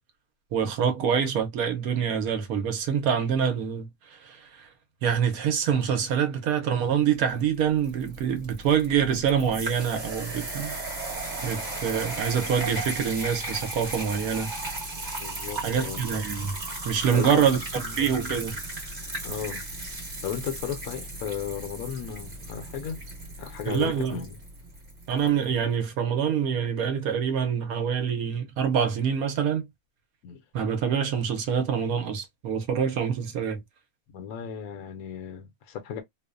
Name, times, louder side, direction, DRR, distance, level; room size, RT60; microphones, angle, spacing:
voice 1, 0.5-3.9 4.2-4.7 5.0-10.7 11.4-14.5 15.6-16.6 16.8-18.6 23.7-24.2 25.1-29.7 30.5-33.6, right 7 dB, 80° right, 1.2 m, -26 dB
sound 1, 7.3-25.4, right 2 dB, 35° right, 1.2 m, -36 dB
voice 2, 15.2-16.1 17.1-17.5 17.7-18.3 19.2-19.6 20.2-23.0 23.4-24.4 30.2-30.4 34.1-36.0, left 8 dB, 80° left, 1.2 m, -35 dB
3.0 x 2.1 x 2.3 m
omnidirectional pair, 1.5 m